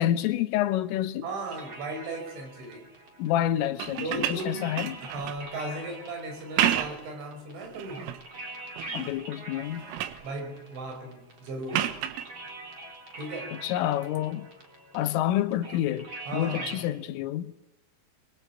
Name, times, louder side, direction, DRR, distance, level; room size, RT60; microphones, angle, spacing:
voice 1, 0.0-1.3 3.2-5.0 8.9-9.9 13.5-14.5 14.9-17.5, left 12 dB, 80° left, 3.6 m, -28 dB
voice 2, 1.2-2.9 4.0-8.1 10.2-12.1 13.2-13.6 16.3-16.9, right 2 dB, 65° right, 7.3 m, -37 dB
sound 1, 1.5-16.9, right 2 dB, 30° right, 3.5 m, -44 dB
sound 2, 3.7-5.5 6.4-7.1 7.6-8.2 8.8-9.2 9.5-10.3 11.7-12.3 14.0-14.2, right 12 dB, 80° right, 3.9 m, -31 dB
24.5 x 23.5 x 8.7 m
omnidirectional pair, 5.8 m